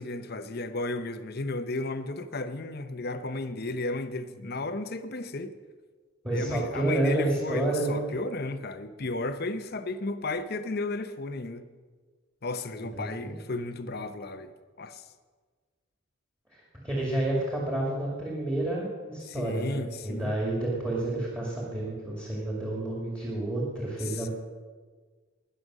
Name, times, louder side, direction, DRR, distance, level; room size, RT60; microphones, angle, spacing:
voice 1, 0.0-5.5 6.3-11.6 12.4-14.5 14.8-15.1 19.3-20.3 24.0-24.3, left 2 dB, 45° left, 10 dB, 0.7 m, -34 dB
voice 2, 6.2-8.0 12.9-13.4 16.5-24.3, right 1 dB, 10° right, -4 dB, 2.3 m, -30 dB
20.5 x 6.8 x 6.3 m, 1.5 s
head